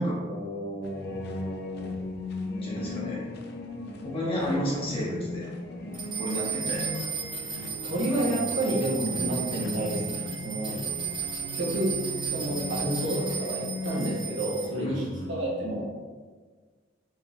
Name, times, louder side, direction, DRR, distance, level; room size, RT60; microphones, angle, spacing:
voice 1, 0.0-1.9 2.6-3.2 4.0-5.5 6.2-7.0 8.3-8.5 14.7-15.7, equal, 30° left, -6 dB, 1.2 m, -32 dB
sound 1, 0.8-14.2, left 2 dB, 60° left, 0.5 m, -37 dB
Sonicsnaps-OM-FR-sonnette-vélo, 5.9-14.6, right 7 dB, 25° right, 1.3 m, -34 dB
voice 2, 7.8-10.8 11.5-15.9, right 1 dB, 70° right, -6 dB, 1.4 m, -30 dB
4.4 x 3.9 x 2.8 m, 1.5 s
head